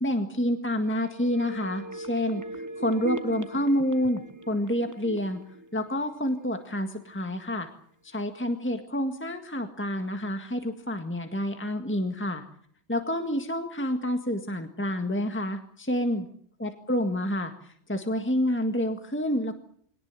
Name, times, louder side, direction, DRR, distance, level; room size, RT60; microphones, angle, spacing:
voice 1, 0.0-2.4 2.8-5.4 5.7-7.7 8.0-12.4 12.9-16.3 16.6-17.5 17.9-19.6, left 1 dB, 10° left, 6 dB, 1.8 m, -28 dB
sound 1, 0.9-6.6 6.9-7.0, right 2 dB, 15° right, 1.1 m, -39 dB
23.0 x 18.5 x 9.6 m, 0.62 s
omnidirectional pair, 1.1 m